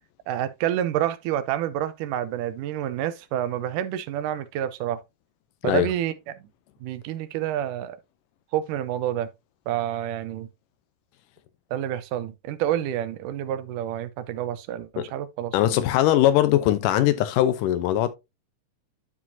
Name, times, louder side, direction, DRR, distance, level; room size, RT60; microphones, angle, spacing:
voice 1, 0.3-5.0 5.6-6.1 6.8-8.0 8.5-9.3 9.7-10.5 11.7-15.5, right 11 dB, 80° right, 2.3 m, -28 dB
voice 2, 15.5-18.1, left 13 dB, 85° left, 2.2 m, -20 dB
11.5 x 4.9 x 2.7 m
omnidirectional pair, 3.8 m